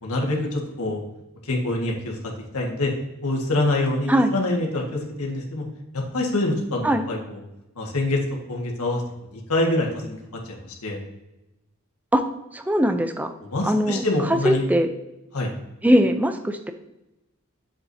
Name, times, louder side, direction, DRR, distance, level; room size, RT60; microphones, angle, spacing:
voice 1, 0.0-1.0 1.4-2.2 2.5-2.9 3.2-5.6 5.9-7.4 7.8-8.2 8.5-9.0 9.3-10.2 10.4-11.0 13.4-14.6 15.3-15.5, left 2 dB, 90° left, 0 dB, 1.7 m, -25 dB
voice 2, 12.5-13.3 13.6-14.0 14.4-14.9 15.8-16.7, equal, 5° right, 7 dB, 0.5 m, -20 dB
9.5 x 7.3 x 2.7 m, 0.97 s
head